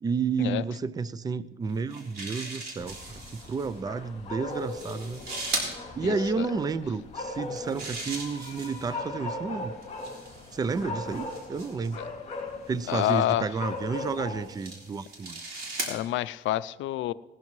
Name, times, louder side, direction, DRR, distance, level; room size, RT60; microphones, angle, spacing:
voice 1, 0.0-5.2 6.0-9.7 10.5-12.0 12.7-15.4, right 4 dB, 20° right, 16 dB, 0.4 m, -31 dB
sound 1, 1.7-3.7 4.5-5.7 7.3-9.0 9.8-12.0 12.8-13.2 13.9-16.0, right 3 dB, 55° right, 3.6 m, -38 dB
sound 2, 2.8-14.4, left 3 dB, 35° left, 2.9 m, -39 dB
voice 2, 6.0-6.5 12.0-12.1 12.9-13.5 15.9-17.1, left 14 dB, 80° left, 17 dB, 0.4 m, -28 dB
19.0 x 12.5 x 3.1 m, 1.2 s
cardioid pair, 135°, 19 cm